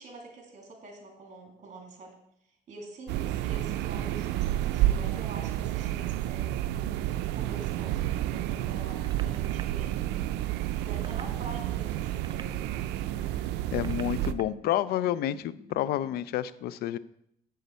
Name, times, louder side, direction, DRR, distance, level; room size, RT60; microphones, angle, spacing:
voice 1, 0.0-2.1 2.7-6.8 7.3-10.0 10.7-12.7, right 2 dB, 45° right, 2 dB, 2.4 m, -46 dB
sound 1, 3.1-14.3, right 13 dB, 85° right, 0.4 m, -30 dB
sound 2, 8.9-9.6 10.7-11.3 12.0-12.9 13.6-14.4 15.6-15.8, right 7 dB, 25° right, 0.4 m, -48 dB
sound 3, 11.1-16.2, left 3 dB, 85° left, 1.7 m, -53 dB
voice 2, 13.7-17.0, left 12 dB, 70° left, 17 dB, 0.4 m, -29 dB
7.8 x 6.8 x 4.5 m, 0.75 s
cardioid pair, 110°, 17 cm